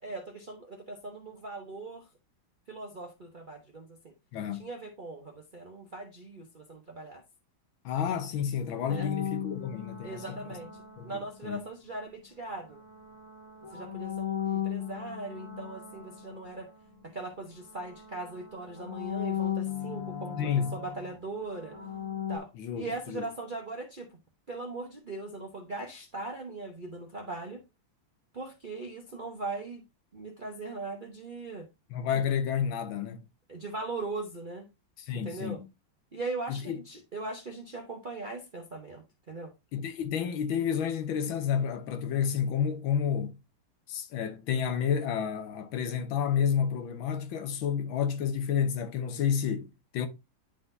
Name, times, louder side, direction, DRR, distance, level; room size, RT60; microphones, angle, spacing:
voice 1, 0.0-2.1 2.7-4.1 4.5-7.2 8.9-9.1 10.0-10.7 11.0-12.8 13.6-16.7 17.0-21.8 22.3-22.5 22.8-24.2 24.5-27.6 28.3-29.8 30.1-31.7 33.5-34.7 35.1-35.6 36.1-39.5, right 3 dB, 50° right, 0.6 m, -40 dB
voice 2, 4.3-4.7 7.8-10.2 11.0-11.6 20.4-20.7 22.5-23.3 31.9-33.2 35.0-35.7 36.5-36.8 39.7-43.4 43.9-50.1, left 8 dB, 80° left, 1.7 m, -30 dB
sound 1, 8.9-11.8 12.5-17.3 17.5-22.4, left 9 dB, 45° left, 1.7 m, -37 dB
10.5 x 3.8 x 2.6 m
omnidirectional pair, 2.1 m